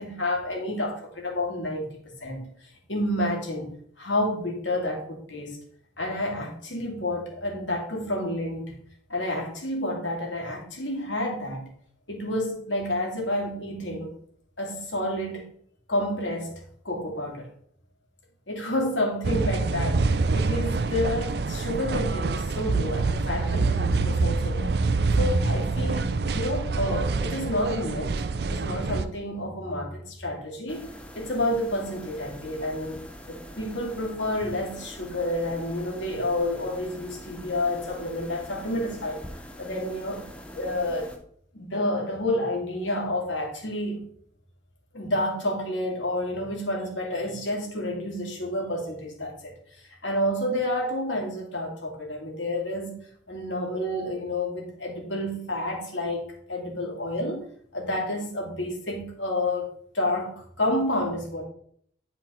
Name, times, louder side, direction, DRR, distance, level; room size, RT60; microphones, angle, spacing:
voice 1, 0.0-5.6 6.0-8.8 9.1-11.7 12.1-14.1 14.6-15.5 15.9-17.5 18.5-24.7 25.2-28.2 28.5-30.9 31.1-39.2 39.6-40.2 40.5-41.1 41.5-44.0 44.9-52.9 53.3-61.4, left 1 dB, 85° left, 0 dB, 2.4 m, -30 dB
sound 1, 19.2-29.0, right 3 dB, 55° right, 0.4 m, -26 dB
sound 2, 30.7-41.2, equal, 5° left, 0.7 m, -44 dB
10.5 x 4.4 x 4.2 m, 0.65 s
head